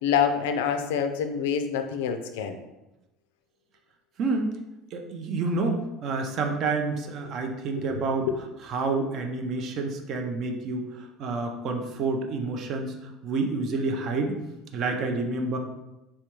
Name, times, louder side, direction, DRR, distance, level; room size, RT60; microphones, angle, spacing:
voice 1, 0.0-2.6 7.8-8.0, left 7 dB, 80° left, 7 dB, 0.3 m, -26 dB
voice 2, 4.2-4.5 4.9-8.3 8.6-13.0 13.2-14.4 14.7-15.6, right 3 dB, 55° right, 4 dB, 0.5 m, -28 dB
3.3 x 2.2 x 3.0 m, 0.97 s
hypercardioid pair, 80°, 0 cm